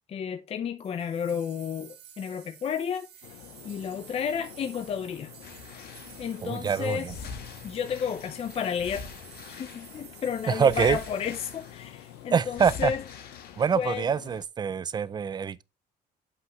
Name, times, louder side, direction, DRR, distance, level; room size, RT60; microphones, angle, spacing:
voice 1, 0.1-3.1 3.6-5.3 6.2-7.2 7.6-9.1 9.5-13.0 13.7-14.1, left 7 dB, 35° left, 0.5 m, -32 dB
sound 1, 0.8-12.8, right 9 dB, 70° right, 1.4 m, -51 dB
sound 2, 3.2-14.5, left 13 dB, 85° left, 0.6 m, -49 dB
sound 3, 5.4-6.4 7.1-10.1 10.6-12.0 12.5-13.9 14.4-14.5, left 5 dB, 70° left, 1.4 m, -44 dB
voice 2, 6.4-7.1 10.5-11.0 12.3-12.9 13.6-15.6, right 7 dB, 25° right, 0.4 m, -25 dB
8.0 x 5.6 x 3.0 m
cardioid pair, 110°, 17 cm